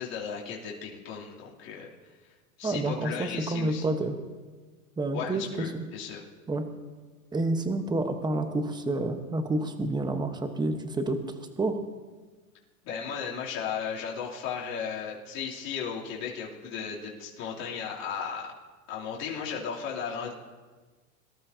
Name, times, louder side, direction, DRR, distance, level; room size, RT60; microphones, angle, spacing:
voice 1, 0.0-1.9 2.6-3.9 5.1-6.2 12.8-18.5 18.9-20.3, left 7 dB, 40° left, -5 dB, 3.1 m, -35 dB
voice 2, 2.6-4.2 5.0-5.9 6.5-6.7 7.3-11.8, right 2 dB, 10° right, 7 dB, 1.1 m, -29 dB
24.0 x 13.0 x 2.8 m, 1.3 s
hypercardioid pair, 125°, 42 cm